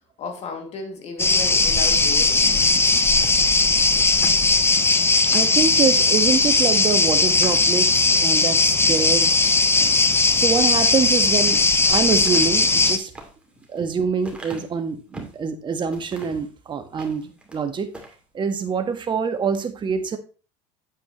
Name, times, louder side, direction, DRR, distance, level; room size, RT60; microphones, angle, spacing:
voice 1, 0.2-2.4, left 4 dB, 45° left, 4 dB, 2.6 m, -34 dB
sound 1, 1.2-13.0, left 3 dB, 15° left, 0.9 m, -18 dB
sound 2, 3.0-5.6 6.1-6.3 6.7-6.8 7.2-8.2 8.7-9.1 10.9-11.6 12.1-15.4 15.9-16.5 16.9-17.6 17.9-18.2, right 1 dB, 5° right, 2.6 m, -42 dB
voice 2, 5.3-9.3 10.3-11.6 11.9-13.1 13.7-17.9 18.3-20.2, right 5 dB, 30° right, 8 dB, 1.5 m, -25 dB
8.6 x 8.3 x 3.1 m, 0.35 s
supercardioid pair, 95°, 16 cm